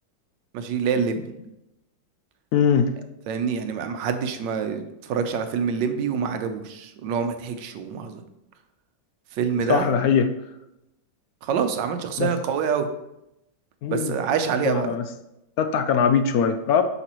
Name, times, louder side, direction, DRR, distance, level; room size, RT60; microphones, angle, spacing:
voice 1, 0.5-1.2 3.3-8.2 9.4-9.9 11.4-12.9 13.9-14.9, right 6 dB, 85° right, 8 dB, 1.4 m, -26 dB
voice 2, 2.5-2.9 9.7-10.3 12.2-12.3 13.8-14.4 14.6-15.0 15.6-16.8, left 7 dB, 70° left, 9 dB, 0.9 m, -21 dB
8.0 x 5.9 x 3.0 m, 0.87 s
omnidirectional pair, 1.9 m